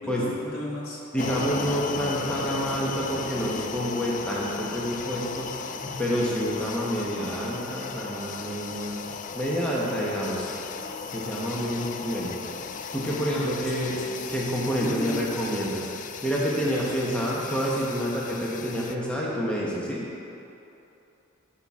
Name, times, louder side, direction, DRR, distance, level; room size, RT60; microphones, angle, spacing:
voice 1, 0.0-1.0 13.3-14.0 14.8-15.2 16.6-16.9, left 2 dB, 80° left, -4 dB, 1.7 m, -35 dB
voice 2, 1.1-5.5 5.8-9.1 9.3-10.5 11.1-12.3 12.9-14.0 14.3-15.9 16.2-20.0, equal, 5° left, -5 dB, 1.1 m, -28 dB
sound 1, 1.2-19.0, left 5 dB, 35° left, 0.3 m, -36 dB
12.0 x 5.8 x 3.7 m, 2.9 s
head